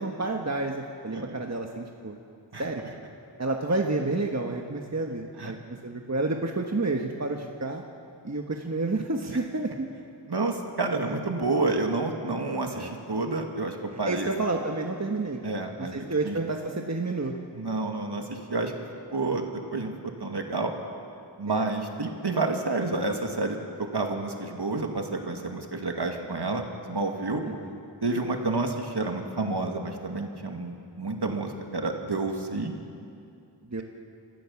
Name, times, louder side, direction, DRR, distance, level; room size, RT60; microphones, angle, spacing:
voice 1, 0.0-2.2 2.6-2.8 3.4-7.8 8.2-9.9 11.0-11.2 12.7-12.9 13.9-15.4 15.8-17.3 21.5-21.7 27.4-27.8 33.6-33.8, right 2 dB, 35° right, 2 dB, 1.4 m, -30 dB
voice 2, 10.3-14.3 15.4-16.3 17.5-18.7 19.1-19.4 19.7-19.9 20.2-20.7 21.4-23.6 23.9-27.4 28.0-32.7, right 3 dB, 60° right, 3 dB, 2.3 m, -29 dB
26.0 x 15.0 x 7.2 m, 2.4 s
wide cardioid pair, 55°, 45 cm